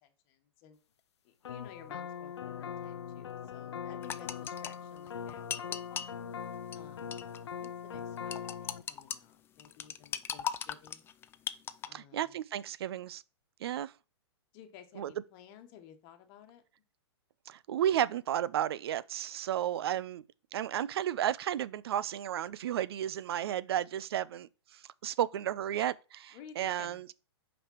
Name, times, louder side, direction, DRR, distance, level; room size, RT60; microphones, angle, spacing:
voice 1, 0.0-0.8 1.2-6.1 6.7-7.2 7.6-11.1 11.8-12.4 14.5-16.6 26.3-27.0, left 9 dB, 40° left, 1.4 m, -55 dB
sound 1, 1.4-8.8, left 8 dB, 75° left, 0.6 m, -41 dB
sound 2, 4.0-6.1 6.7-6.8 7.1-7.4 7.6-7.7 8.3-9.2 9.6-11.9, left 9 dB, 15° left, 0.4 m, -38 dB
voice 2, 11.9-13.2 13.6-13.9 15.0-15.1 17.5-20.2 20.5-27.1, right 11 dB, 65° right, 0.5 m, -33 dB
5.7 x 5.3 x 4.5 m
hypercardioid pair, 115°, 14 cm